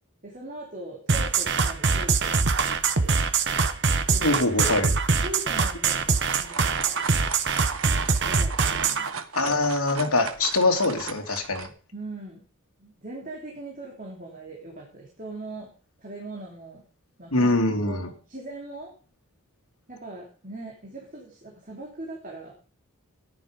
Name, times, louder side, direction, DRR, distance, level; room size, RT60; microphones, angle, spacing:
voice 1, 0.2-2.4 2.7-3.2 4.1-4.3 5.2-7.0 8.2-9.1 9.4-9.5 11.9-12.4 12.8-15.7 16.0-16.8 17.2-17.5 17.9-18.9 19.9-22.5, right 2 dB, 35° right, -1 dB, 3.3 m, -40 dB
sound 1, 1.1-9.1, right 5 dB, 55° right, 1.1 m, -23 dB
voice 2, 4.2-4.9 9.3-11.7 17.3-18.1, left 2 dB, 85° left, 3 dB, 2.8 m, -23 dB
sound 2, 6.0-11.7, right 5 dB, 70° right, 1.3 m, -37 dB
14.5 x 10.5 x 5.2 m, 0.38 s
head